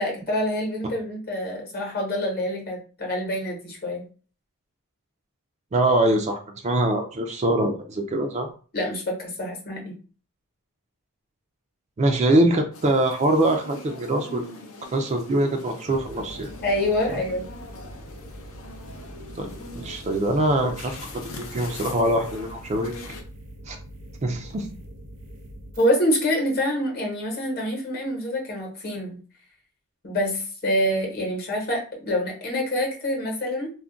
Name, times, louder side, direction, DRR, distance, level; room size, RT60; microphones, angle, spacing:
voice 1, 0.0-4.0 8.7-9.9 16.6-17.5 25.8-29.2 30.0-33.7, left 1 dB, 45° left, 0 dB, 0.9 m, -26 dB
voice 2, 5.7-8.5 12.0-14.5 14.9-16.5 19.4-19.5 19.7-22.9 23.7-23.8 24.2-24.7, right 1 dB, 30° right, 4 dB, 0.3 m, -23 dB
sound 1, 12.7-23.2, left 3 dB, 65° left, 0.5 m, -42 dB
sound 2, 15.8-25.9, right 1 dB, 80° right, 0.9 m, -43 dB
2.3 x 2.1 x 3.7 m, 0.39 s
head